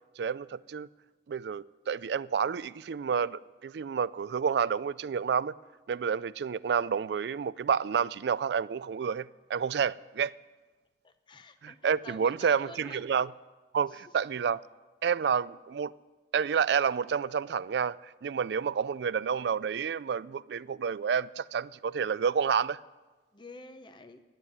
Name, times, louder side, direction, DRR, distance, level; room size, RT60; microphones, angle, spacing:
voice 1, 0.2-0.9 1.3-5.5 5.9-10.3 11.6-13.3 13.7-14.6 15.0-15.9 16.3-22.8, right 6 dB, 75° right, 0.3 m, -29 dB
voice 2, 11.0-13.0 13.9-14.2 23.3-24.2, left 2 dB, 25° left, 0.6 m, -49 dB
11.0 x 9.1 x 9.5 m
head